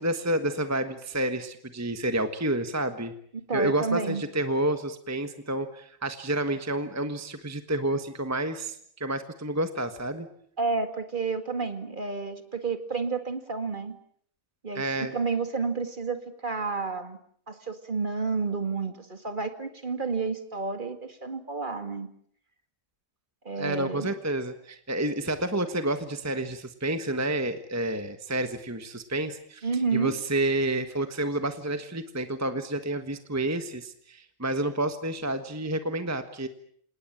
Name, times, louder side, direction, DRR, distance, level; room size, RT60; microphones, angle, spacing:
voice 1, 0.0-3.1 3.5-10.3 14.7-15.1 23.6-36.5, right 1 dB, 10° right, 9 dB, 1.3 m, -29 dB
voice 2, 3.5-4.2 10.6-14.0 14.6-17.2 17.5-22.1 23.4-24.1 29.6-30.1, right 4 dB, 35° right, 8 dB, 2.2 m, -30 dB
27.5 x 19.0 x 9.0 m, 0.65 s
omnidirectional pair, 1.4 m